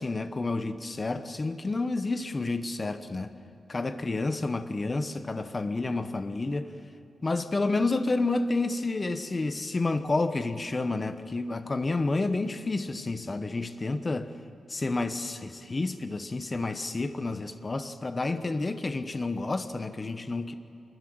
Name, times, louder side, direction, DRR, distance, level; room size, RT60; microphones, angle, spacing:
voice 1, 0.0-3.3 3.7-6.7 7.2-14.3 14.7-20.5, left 3 dB, 25° left, 10 dB, 1.1 m, -30 dB
25.5 x 22.0 x 7.9 m, 2.7 s
wide cardioid pair, 165°, 0 cm